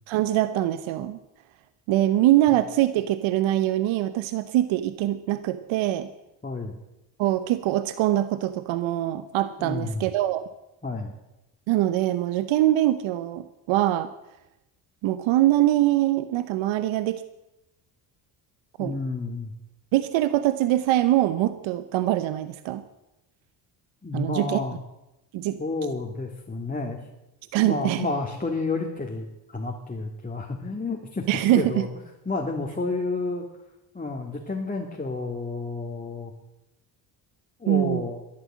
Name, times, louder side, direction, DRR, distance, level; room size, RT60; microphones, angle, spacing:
voice 1, 0.1-1.2 1.9-6.1 7.2-10.4 11.7-14.1 15.0-17.2 18.8-19.0 19.9-22.8 24.1-24.6 25.3-25.6 27.5-28.1 31.3-31.8 37.7-38.1, right 14 dB, 70° right, 13 dB, 0.9 m, -23 dB
voice 2, 6.4-6.8 9.6-10.0 10.8-11.1 18.8-19.5 24.0-24.8 25.6-27.1 27.6-31.2 31.5-31.9 32.3-33.5 33.9-36.3 37.6-38.2, left 3 dB, 15° left, 1 dB, 2.4 m, -30 dB
13.0 x 11.5 x 7.6 m, 0.96 s
supercardioid pair, 65°, 48 cm